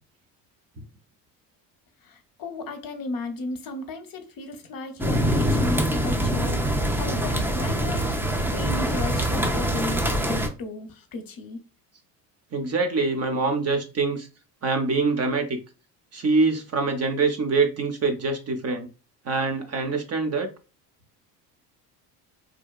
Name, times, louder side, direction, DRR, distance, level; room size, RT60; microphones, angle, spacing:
voice 1, 2.0-8.1 8.4-11.6, left 3 dB, 45° left, 0.7 m, -34 dB
sound 1, 5.0-10.5, right 1 dB, 5° right, 0.3 m, -24 dB
voice 2, 12.5-14.3 14.6-15.6 16.1-18.9 19.3-20.5, right 3 dB, 30° right, 0.6 m, -24 dB
2.8 x 2.1 x 2.3 m
hypercardioid pair, 65°, 48 cm